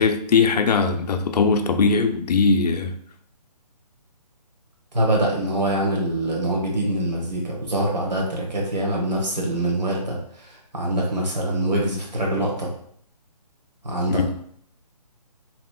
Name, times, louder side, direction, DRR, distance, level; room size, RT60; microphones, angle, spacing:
voice 1, 0.0-3.0 14.1-14.3, left 4 dB, 70° left, 7 dB, 0.4 m, -20 dB
voice 2, 4.9-12.7 13.8-14.4, right 1 dB, 90° right, -2 dB, 1.3 m, -24 dB
3.0 x 2.8 x 2.2 m, 0.63 s
hypercardioid pair, 170°, 21 cm